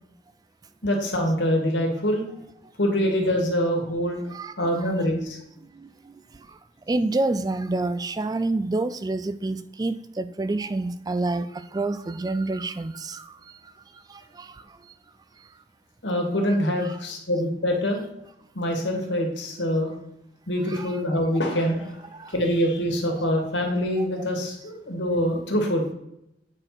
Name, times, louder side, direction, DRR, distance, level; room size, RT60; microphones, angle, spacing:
voice 1, 0.8-2.3 2.8-4.2 4.6-5.4 16.0-18.0 18.5-19.9 20.5-22.0 22.3-25.9, equal, 85° left, 2.1 m, -24 dB
voice 2, 6.9-11.5 11.7-13.2 20.7-21.0 22.2-22.3 24.0-24.1, right 2 dB, 20° right, 0.3 m, -27 dB
8.9 x 4.5 x 5.9 m
head